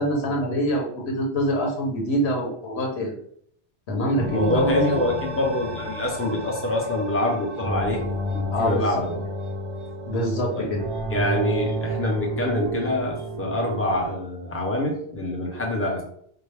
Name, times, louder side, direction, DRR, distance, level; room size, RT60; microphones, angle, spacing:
voice 1, 0.0-3.2 3.9-5.0 8.5-8.9 10.1-10.8, equal, 85° left, 0 dB, 1.2 m, -25 dB
sound 1, 4.1-14.1, right 1 dB, 40° right, 0.5 m, -31 dB
voice 2, 4.2-8.0 8.3-9.2 10.6-10.7 11.1-16.0, left 1 dB, 15° left, -1 dB, 0.7 m, -26 dB
4.7 x 2.1 x 3.3 m, 0.64 s
omnidirectional pair, 1.1 m